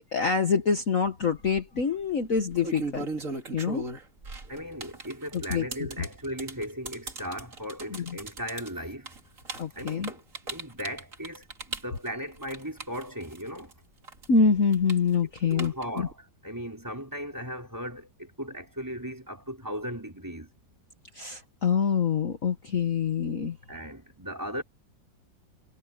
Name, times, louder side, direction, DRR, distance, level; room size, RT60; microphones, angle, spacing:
voice 1, 0.1-3.1 3.5-3.8 5.3-5.9 7.9-8.2 9.6-10.1 14.3-16.1 21.1-23.6, left 5 dB, 45° left, 1.6 m, -26 dB
sound 1, 1.3-1.6 2.4-13.7 14.0-16.1, right 3 dB, 45° right, 2.9 m, -38 dB
voice 2, 4.5-9.1 9.7-10.2 10.5-13.8 15.5-20.5 23.7-24.6, equal, 10° right, 4.3 m, -37 dB
omnidirectional pair, 2.1 m